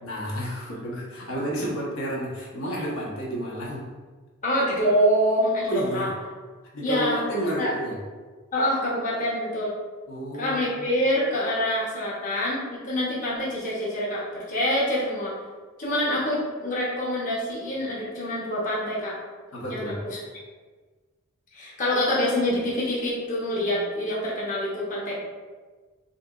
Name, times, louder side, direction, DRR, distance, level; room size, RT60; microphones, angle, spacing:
voice 1, 0.0-3.9 5.7-6.1 6.7-8.0 10.1-10.9 19.5-20.0, right 1 dB, 85° left, -4 dB, 1.2 m, -31 dB
voice 2, 4.4-6.1 6.8-7.2 7.6-7.7 8.5-9.7 10.4-15.3 15.8-19.2 19.7-19.9 21.5-25.2, equal, 35° left, -6 dB, 1.0 m, -26 dB
6.7 x 2.7 x 2.4 m, 1.4 s
head